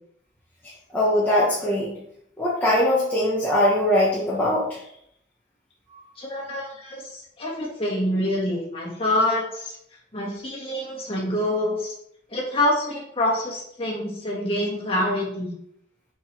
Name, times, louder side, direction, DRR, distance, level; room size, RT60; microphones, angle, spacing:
voice 1, 0.9-1.9 2.4-4.8 5.9-6.0, left 1 dB, 10° left, -8 dB, 1.1 m, -21 dB
voice 2, 6.2-9.8 10.1-11.9 12.3-15.5, left 1 dB, 30° left, -4 dB, 1.8 m, -26 dB
6.6 x 4.7 x 3.3 m, 0.71 s
head